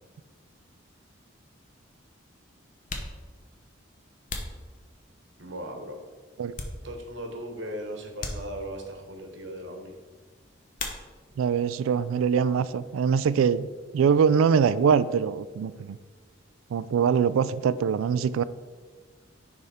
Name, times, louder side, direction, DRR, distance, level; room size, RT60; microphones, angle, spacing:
sound 1, 1.0-1.1 2.0-2.1 2.7-5.4 5.9-7.3 7.6-7.7 8.2-9.0 10.7-11.5 11.8-12.5 12.7-14.9, left 3 dB, 40° left, 0.7 m, -40 dB
voice 1, 5.4-6.0 6.8-10.0, right 1 dB, 65° right, 3 dB, 1.1 m, -38 dB
voice 2, 11.4-13.7 13.9-16.0 16.7-18.4, right 7 dB, 85° right, 17 dB, 0.3 m, -23 dB
10.0 x 3.5 x 4.2 m, 1.4 s
head